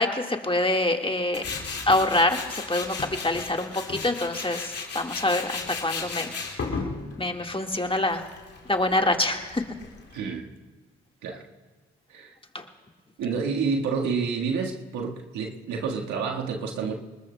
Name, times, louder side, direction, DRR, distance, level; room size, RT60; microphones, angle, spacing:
voice 1, 0.0-1.4 1.9-2.9 3.2-6.3 7.2-8.2 8.7-9.6 12.5-12.6, left 2 dB, 20° left, 4 dB, 1.6 m, -25 dB
Tools, 1.3-10.2, left 4 dB, 55° left, 2.5 m, -35 dB
voice 2, 10.1-10.5 11.2-11.4 12.1-12.3 13.2-17.0, right 5 dB, 75° right, 0 dB, 1.6 m, -29 dB
26.0 x 20.5 x 2.2 m, 1.3 s
hypercardioid pair, 45°, 29 cm